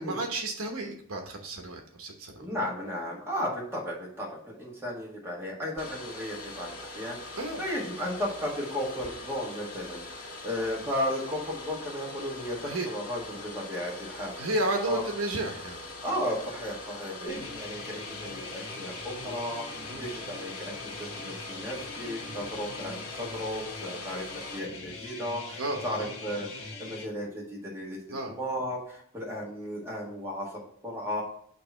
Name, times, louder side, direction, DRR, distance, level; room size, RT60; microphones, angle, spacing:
voice 1, 0.0-2.3 7.3-7.6 12.6-12.9 14.4-15.8 19.9-20.1 25.6-26.1 28.1-28.3, right 2 dB, 70° right, 3 dB, 1.0 m, -32 dB
voice 2, 2.4-6.7 6.9-14.3 14.9-15.0 16.0-28.0 28.3-31.2, equal, 10° right, -4 dB, 1.7 m, -35 dB
Domestic sounds home sounds, 5.8-24.6, left 2 dB, 80° left, 1.8 m, -42 dB
sound 1, 17.3-27.1, left 3 dB, 65° left, 1.4 m, -42 dB
6.6 x 2.9 x 5.6 m, 0.64 s
head